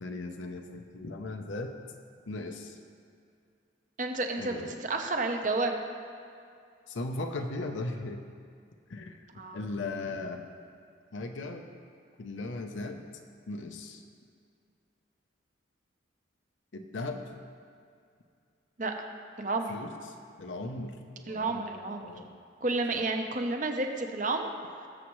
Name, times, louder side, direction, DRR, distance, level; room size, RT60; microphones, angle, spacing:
voice 1, 0.0-1.8 2.3-2.8 4.4-4.7 6.9-8.2 8.9-9.2 9.5-10.4 11.1-11.6 12.2-13.0 13.5-14.0 16.7-17.2 19.7-19.9 20.4-21.6 22.0-22.3 22.9-23.0, left 2 dB, 85° left, 3 dB, 0.7 m, -37 dB
voice 2, 4.0-5.7 9.4-9.6 18.8-18.9 19.4-19.7 21.3-22.1 22.6-24.5, right 3 dB, 45° right, 4 dB, 0.8 m, -31 dB
18.5 x 7.4 x 3.1 m, 2.4 s
head